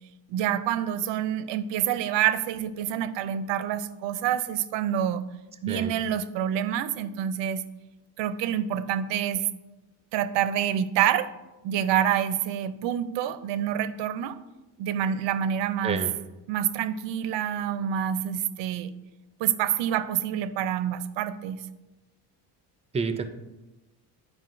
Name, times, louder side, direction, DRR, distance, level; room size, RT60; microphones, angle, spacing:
voice 1, 0.3-5.2 5.6-7.6 8.2-9.5 10.1-11.3 11.6-14.4 14.8-16.0 16.5-18.9 19.4-21.6, right 10 dB, 90° right, 13 dB, 0.5 m, -27 dB
voice 2, 5.7-6.0 15.8-16.1 22.9-23.3, right 5 dB, 15° right, 9 dB, 0.4 m, -29 dB
9.3 x 4.9 x 2.5 m, 1.1 s
cardioid pair, 120°, 42 cm